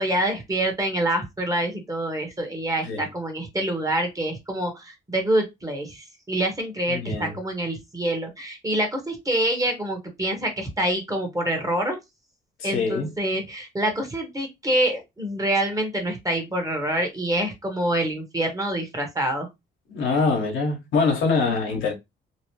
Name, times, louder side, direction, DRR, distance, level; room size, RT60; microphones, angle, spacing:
voice 1, 0.0-12.0 12.6-19.5, right 1 dB, 15° right, 1.1 m, -26 dB
voice 2, 6.9-7.4 12.6-13.1 19.9-21.9, left 4 dB, 80° left, 1.1 m, -24 dB
2.9 x 2.0 x 3.0 m
cardioid pair, 90°, 20 cm